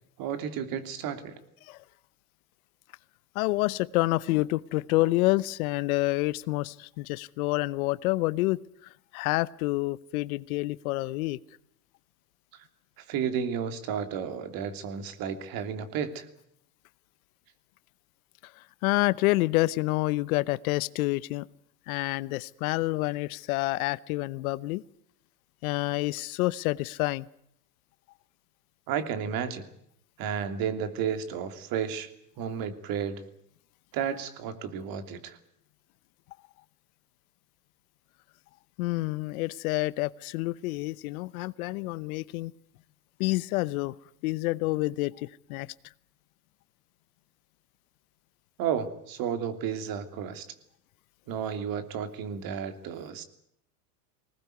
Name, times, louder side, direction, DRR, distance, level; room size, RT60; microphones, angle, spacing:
voice 1, 0.2-1.4 12.5-12.7 13.0-16.3 28.9-29.7 30.2-33.2 33.9-35.4 48.6-50.5 51.3-53.2, right 8 dB, 45° right, 9 dB, 3.1 m, -32 dB
voice 2, 3.3-8.6 9.1-11.4 18.8-21.4 21.9-24.8 25.6-27.3 38.8-42.5 43.2-43.9 44.2-45.7, left 20 dB, 65° left, 19 dB, 0.9 m, -28 dB
21.0 x 19.0 x 9.4 m, 0.73 s
supercardioid pair, 120°, 47 cm